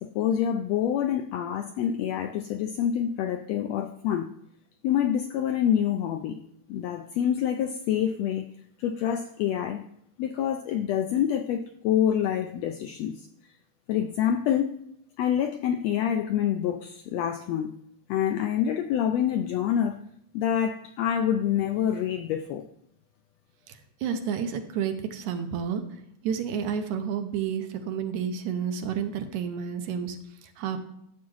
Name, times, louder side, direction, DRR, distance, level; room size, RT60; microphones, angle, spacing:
voice 1, 0.0-4.3 4.8-6.4 6.7-8.4 8.8-9.8 10.2-13.2 13.9-14.7 15.2-17.7 18.1-20.0 20.3-22.6, left 9 dB, 85° left, 6 dB, 1.5 m, -26 dB
voice 2, 23.7-25.8 26.2-30.8, right 7 dB, 80° right, 7 dB, 2.1 m, -30 dB
11.5 x 7.2 x 3.1 m, 0.74 s
omnidirectional pair, 3.5 m